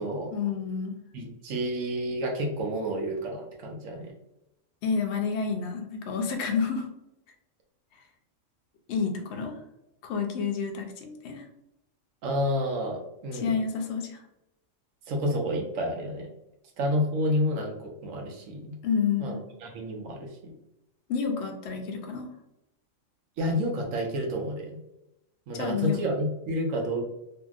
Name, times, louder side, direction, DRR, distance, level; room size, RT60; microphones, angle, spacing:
voice 1, 0.3-1.0 4.8-6.9 7.9-8.0 8.9-9.6 10.0-11.5 13.3-14.2 18.8-19.4 21.1-22.3 25.5-26.0, left 6 dB, 65° left, 3 dB, 0.8 m, -29 dB
voice 2, 1.1-4.1 12.2-13.6 15.1-16.3 16.8-18.7 19.2-20.5 23.4-24.8 25.5-27.0, equal, 85° right, 1 dB, 1.0 m, -30 dB
2.8 x 2.6 x 2.3 m, 0.86 s
omnidirectional pair, 1.3 m